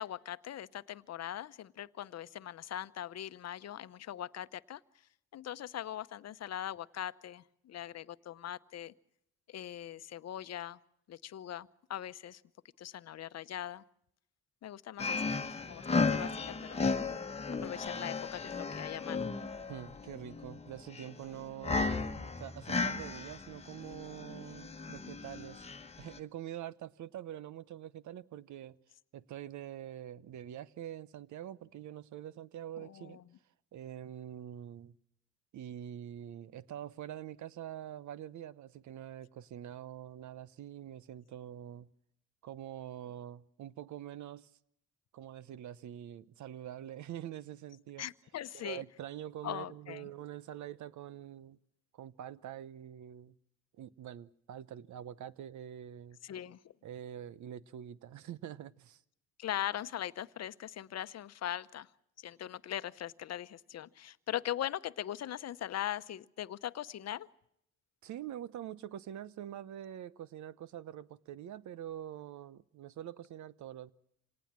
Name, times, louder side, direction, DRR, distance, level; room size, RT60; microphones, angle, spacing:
voice 1, 0.0-4.8 5.3-8.9 9.5-10.8 11.1-12.4 12.8-13.8 14.6-15.2 15.6-16.4 16.7-16.8 17.6-19.3 32.8-33.2 48.0-48.8 49.4-50.1 56.2-56.6 59.4-61.9 62.2-67.3, left 11 dB, 60° left, 0.9 m, -40 dB
sound 1, 15.0-26.2, left 4 dB, 20° left, 1.3 m, -35 dB
voice 2, 19.7-25.7 26.0-28.8 29.1-33.2 33.7-34.9 35.5-41.9 42.4-44.5 45.1-48.1 48.5-51.6 51.9-53.3 53.8-56.2 56.8-59.0 68.0-73.9, right 11 dB, 70° right, 1.0 m, -45 dB
26.5 x 18.5 x 7.4 m
cardioid pair, 90°, 30 cm